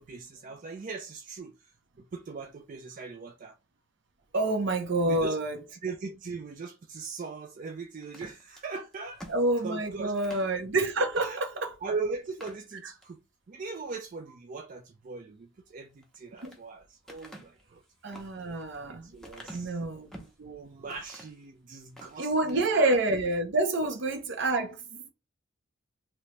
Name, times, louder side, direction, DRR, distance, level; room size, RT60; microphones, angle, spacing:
voice 1, 0.0-3.5 5.1-5.4 5.7-9.2 9.6-10.3 11.1-13.2 13.5-17.8 19.0-19.8 20.4-23.0 23.8-23.9, right 4 dB, 40° right, 0.4 m, -40 dB
voice 2, 4.3-5.6 9.3-11.7 16.4-16.6 18.0-19.2 19.5-20.3 22.2-25.1, right 2 dB, 60° right, 0.8 m, -28 dB
sound 1, 8.0-10.5 11.1-11.3 11.7-11.8 12.2-13.2 13.6-14.1 15.9-16.6 17.1-20.4 20.9-21.4 21.8-22.6 22.9-23.2, equal, ahead, 0.7 m, -50 dB
3.0 x 2.9 x 3.2 m
head